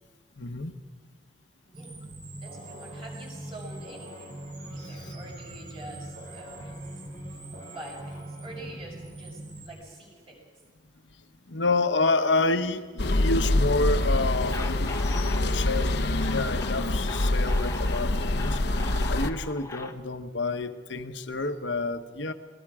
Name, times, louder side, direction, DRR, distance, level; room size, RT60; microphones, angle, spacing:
voice 1, 0.4-0.8 4.7-5.1 7.0-7.1 11.5-18.6 19.1-22.3, left 3 dB, 80° left, 8 dB, 1.2 m, -29 dB
voice 2, 1.6-1.9 2.4-4.4 4.7-6.8 7.7-10.4, right 2 dB, 30° right, -2 dB, 6.6 m, -46 dB
sound 1, 1.7-9.7, right 1 dB, 45° right, 3.8 m, -41 dB
sound 2, 13.0-19.3, left 1 dB, 65° left, 0.9 m, -25 dB
sound 3, 14.4-19.9, left 2 dB, 15° left, 0.9 m, -41 dB
28.0 x 20.0 x 4.9 m, 1.4 s
head